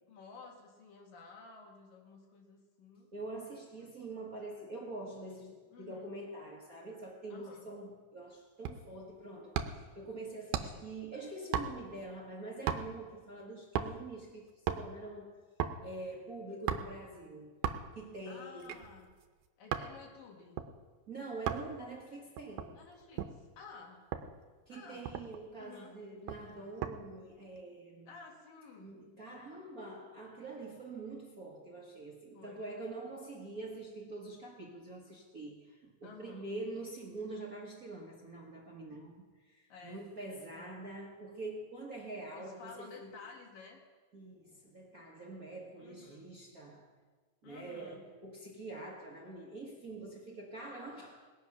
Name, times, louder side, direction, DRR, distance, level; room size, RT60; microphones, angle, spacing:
voice 1, 0.1-3.1 3.8-4.0 5.7-6.1 7.3-7.7 10.6-10.9 18.3-19.1 19.6-20.6 22.7-24.1 24.7-25.1 25.6-26.0 28.1-29.0 32.3-32.6 36.0-36.5 39.7-40.1 40.5-40.8 42.3-43.8 45.8-46.3 47.4-48.0, left 4 dB, 90° left, 3.7 m, -53 dB
voice 2, 3.1-15.4 15.8-17.5 17.9-18.8 21.1-22.8 24.7-28.1 28.8-43.1 44.1-46.9 47.4-51.3, right 2 dB, 45° right, 1.2 m, -45 dB
sound 1, 8.6-9.0 9.5-9.9 10.5-10.9 11.5-12.0 12.7-13.1 13.7-14.1 14.5-14.9 15.6-15.8 16.7-17.0 17.6-18.0 18.6-19.9 20.6-20.7 21.5-21.7 22.4-23.4 24.1-24.3 24.7-24.8 25.0-25.5 26.3-27.0 27.3-27.6, right 9 dB, 75° right, 2.1 m, -37 dB
20.0 x 7.9 x 5.9 m
omnidirectional pair, 3.8 m